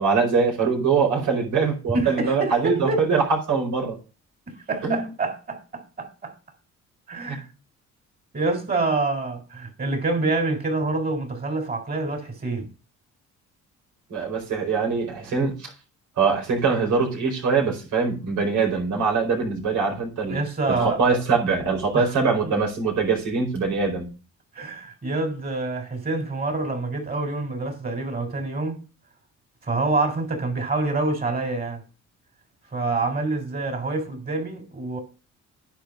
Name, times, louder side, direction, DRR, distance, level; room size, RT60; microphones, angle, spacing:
voice 1, 0.0-3.9 4.8-5.1 7.3-7.4 14.1-15.7 16.2-20.4 20.7-24.1, right 5 dB, 75° right, 4.9 m, -23 dB
voice 2, 1.9-3.1 4.5-6.3 7.1-7.5 8.3-12.7 20.3-21.0 21.9-22.1 24.6-28.8 29.7-31.8 32.7-35.0, right 3 dB, 30° right, 4.2 m, -26 dB
10.5 x 4.7 x 6.5 m
cardioid pair, 90°, 30 cm